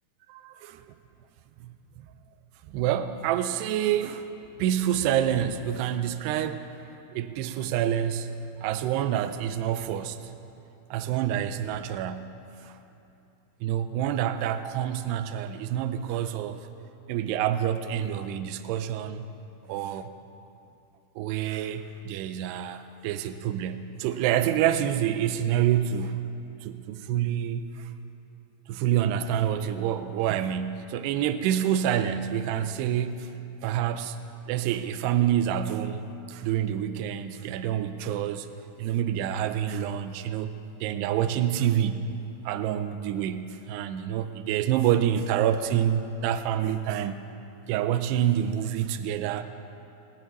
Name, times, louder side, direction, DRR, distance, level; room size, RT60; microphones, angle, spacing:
voice 1, 0.3-0.9 1.6-1.7 2.7-4.3 4.6-6.7 7.1-10.3 10.9-12.3 12.6-12.7 13.6-16.6 17.1-19.2 19.7-20.1 21.2-26.2 26.6-27.9 28.7-33.3 33.6-34.2 34.5-38.5 38.8-40.5 40.8-42.1 42.5-47.2 47.7-49.4, right 10 dB, 85° right, 10 dB, 2.7 m, -27 dB
18.5 x 8.3 x 9.3 m, 2.9 s
omnidirectional pair, 4.7 m